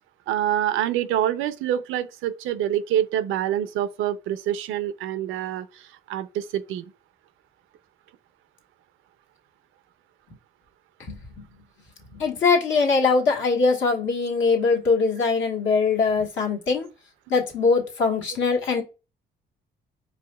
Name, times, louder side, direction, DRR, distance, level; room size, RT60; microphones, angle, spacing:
voice 1, 0.3-6.8, right 11 dB, 90° right, 0.5 m, -26 dB
voice 2, 12.1-16.9 17.3-18.8, left 4 dB, 70° left, 1.4 m, -22 dB
4.8 x 2.8 x 2.2 m
cardioid pair, 90°, 20 cm